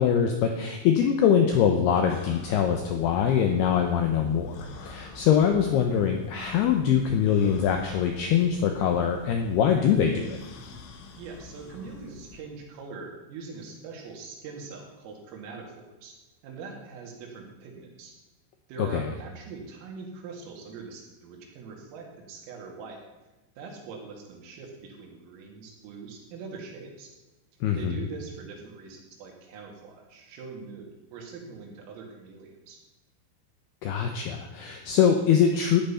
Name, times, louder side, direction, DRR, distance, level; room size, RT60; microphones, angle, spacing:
voice 1, 0.0-10.4 18.8-19.1 27.6-28.0 33.8-35.8, left 8 dB, 90° left, 4 dB, 2.3 m, -23 dB
sound 1, 2.1-12.4, left 4 dB, 75° left, 3.8 m, -46 dB
voice 2, 11.1-16.1 16.4-18.1 18.7-23.0 23.6-27.1 27.7-32.8, right 4 dB, 85° right, 0 dB, 5.1 m, -42 dB
14.0 x 10.5 x 5.7 m, 1.1 s
omnidirectional pair, 5.8 m